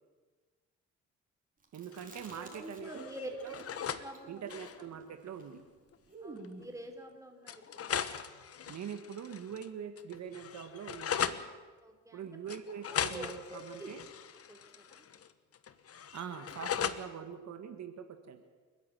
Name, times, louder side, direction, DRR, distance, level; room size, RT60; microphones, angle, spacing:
Chewing mastication, 1.6-3.1 3.4-6.8, right 2 dB, 30° right, 4.3 m, -51 dB
voice 1, 1.7-3.0 3.4-3.6 4.3-5.6 8.7-11.4 12.1-14.0 16.1-18.4, right 7 dB, 65° right, 7 dB, 1.7 m, -43 dB
sound 1, 1.9-2.6 2.8-4.1 4.4-4.8 5.9-6.0 6.4-6.5 7.5-9.7 10.0-11.4 12.5-15.3 15.5-17.0, left 8 dB, 50° left, 1.2 m, -38 dB
voice 2, 2.3-3.3 4.0-4.6 6.2-8.0 11.8-12.3 12.9-13.9 14.5-15.1, right 1 dB, 10° right, 4 dB, 4.0 m, -47 dB
29.0 x 10.5 x 9.1 m, 1.4 s
cardioid pair, 90°, 30 cm